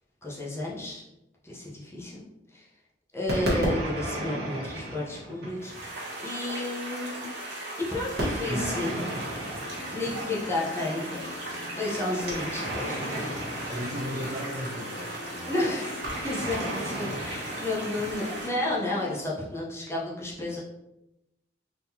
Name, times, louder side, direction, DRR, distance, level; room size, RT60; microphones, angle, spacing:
voice 1, 0.2-1.0 1.4-2.2 2.5-2.7 3.1-5.7 6.2-7.3 7.9-9.0 9.9-11.2 11.8-13.6 15.5-20.6, left 2 dB, 15° left, -5 dB, 0.9 m, -32 dB
sound 1, 3.3-5.9 8.2-10.5 12.2-14.6 16.0-18.5, right 1 dB, 60° right, 1.3 m, -33 dB
sound 2, 5.6-18.5, right 1 dB, 85° right, 1.2 m, -38 dB
voice 2, 8.4-9.1 13.7-15.5, equal, 20° right, -3 dB, 0.7 m, -36 dB
sound 3, 9.1-19.3, left 3 dB, 50° left, 0.4 m, -43 dB
3.9 x 3.7 x 2.8 m, 0.90 s
head